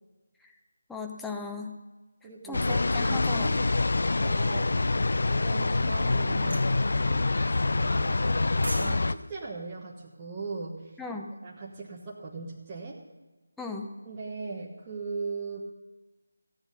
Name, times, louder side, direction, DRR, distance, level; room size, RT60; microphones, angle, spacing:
voice 1, 0.9-1.7 2.5-3.6 11.0-11.3 13.6-13.9, left 4 dB, 5° left, 1 dB, 0.7 m, -37 dB
voice 2, 2.2-2.7 3.1-3.2 4.2-4.7 5.3-7.3 7.7-8.2 8.7-13.0 14.0-15.6, right 4 dB, 20° right, -5 dB, 1.2 m, -39 dB
sound 1, 2.5-9.2, left 3 dB, 65° left, 0.4 m, -26 dB
sound 2, 6.5-6.7 8.3-9.0 9.2-9.4, right 2 dB, 65° right, 1.6 m, -37 dB
15.0 x 8.9 x 5.4 m, 1.2 s
figure-of-eight pair, 160°, 0 cm